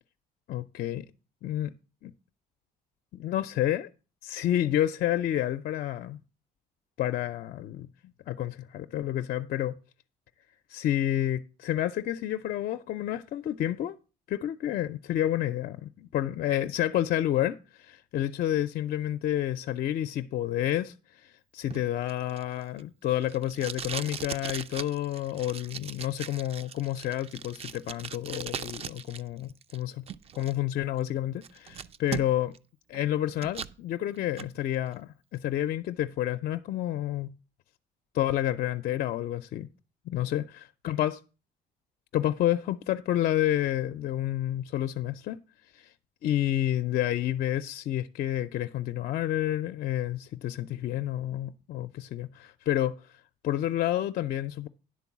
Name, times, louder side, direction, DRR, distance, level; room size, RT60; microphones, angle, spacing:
voice 1, 0.5-1.1 1.4-1.7 2.0-2.1 3.1-3.9 4.2-6.2 7.0-7.9 8.3-9.7 10.7-14.0 14.3-30.0 30.4-32.5 32.9-37.3 38.1-39.7 40.1-41.2 42.1-45.4 45.7-45.9 46.2-54.7, left 12 dB, 55° left, 0.5 m, -29 dB
Packing tape duct tape, 21.7-29.2 29.5-30.5 31.0-31.1 31.4-32.6 32.9-33.8 34.2-34.5, right 7 dB, 35° right, 0.4 m, -39 dB
10.5 x 3.8 x 7.1 m
cardioid pair, 110°, 17 cm